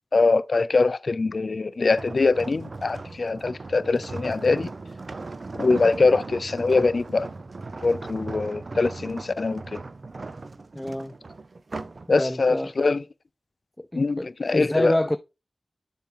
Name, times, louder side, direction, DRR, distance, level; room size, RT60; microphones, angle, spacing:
voice 1, 0.1-4.7 5.6-7.3 7.8-9.8 12.1-13.0 13.9-15.0, left 3 dB, 65° left, 0.4 m, -23 dB
sound 1, 1.9-12.1 12.5-12.8, right 3 dB, 60° right, 0.6 m, -38 dB
voice 2, 10.8-11.1 12.1-12.7 13.8-15.2, left 1 dB, 15° left, 0.5 m, -27 dB
7.3 x 3.6 x 5.5 m
wide cardioid pair, 55°, 0 cm